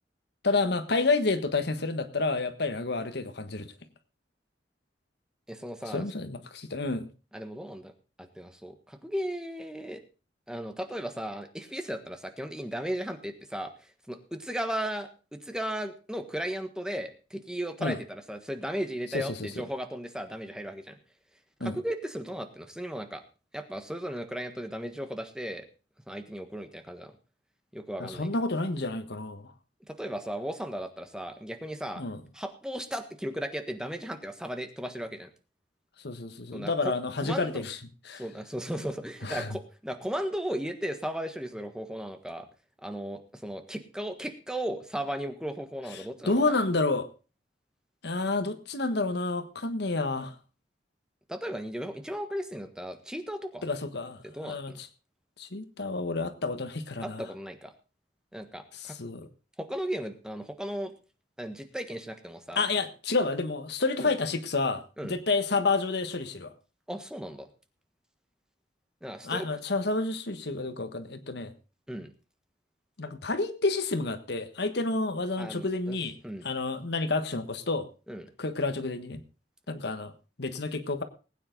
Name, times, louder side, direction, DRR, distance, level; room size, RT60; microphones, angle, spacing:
voice 1, 0.4-3.7 5.9-7.1 17.8-18.0 19.1-19.5 21.6-21.8 28.0-29.5 32.0-32.2 36.0-37.8 38.1-38.2 39.2-39.6 46.2-47.1 48.0-50.3 53.6-54.9 55.4-57.2 58.7-59.3 62.5-66.5 69.2-71.5 73.0-76.1 76.4-77.9 78.4-79.2 79.7-80.1 80.4-81.0, left 3 dB, 65° left, 10 dB, 1.4 m, -29 dB
voice 2, 5.5-6.0 7.3-7.9 8.2-10.0 10.5-13.7 14.1-20.9 21.6-23.2 23.5-25.6 26.1-27.1 27.7-28.3 29.9-32.0 32.3-35.3 36.5-36.9 37.2-37.6 38.1-42.5 42.8-46.5 51.3-53.6 54.2-54.8 57.0-57.7 58.3-59.0 59.6-60.9 61.4-62.6 64.0-64.1 65.0-65.2 66.9-67.5 69.0-69.5 71.9-72.1 75.4-76.0 76.2-76.5 78.1-78.2, equal, 5° right, 7 dB, 1.4 m, -36 dB
20.0 x 9.3 x 3.9 m, 0.34 s
head